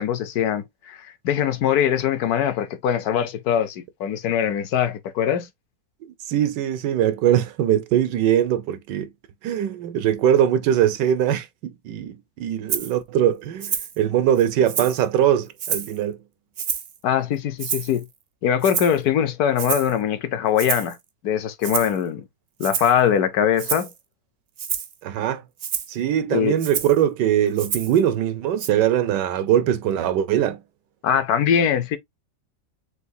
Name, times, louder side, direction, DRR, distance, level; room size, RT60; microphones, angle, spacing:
voice 1, 0.0-5.5 17.0-18.1 18.4-21.0 21.2-22.2 22.6-23.9 26.3-26.5 31.0-32.0, left 9 dB, 70° left, 1.1 m, -22 dB
voice 2, 6.0-9.1 9.4-16.2 25.0-25.4 25.9-30.6, right 10 dB, 90° right, 1.4 m, -21 dB
Rattle (instrument), 12.7-12.9 13.6-14.0 14.4-15.0 15.6-16.0 16.6-17.0 17.6-18.0 18.6-19.0 19.6-19.9 20.6-20.9 21.6-22.0 22.6-23.0 23.6-23.9 24.6-24.9 25.6-25.9 26.6-27.0 27.6-28.0 28.6-28.7, right 8 dB, 60° right, 0.6 m, -28 dB
6.7 x 2.3 x 2.7 m
omnidirectional pair, 1.8 m